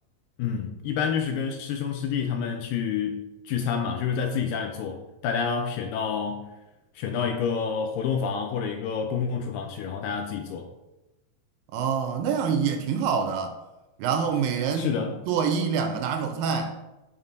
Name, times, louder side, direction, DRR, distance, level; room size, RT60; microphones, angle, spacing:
voice 1, 0.4-6.5 7.0-10.7 14.8-15.2, left 6 dB, 80° left, 2.0 m, -28 dB
voice 2, 11.7-13.6 14.0-15.0 15.3-16.8, right 6 dB, 80° right, 2.2 m, -26 dB
7.2 x 3.7 x 3.9 m
omnidirectional pair, 4.2 m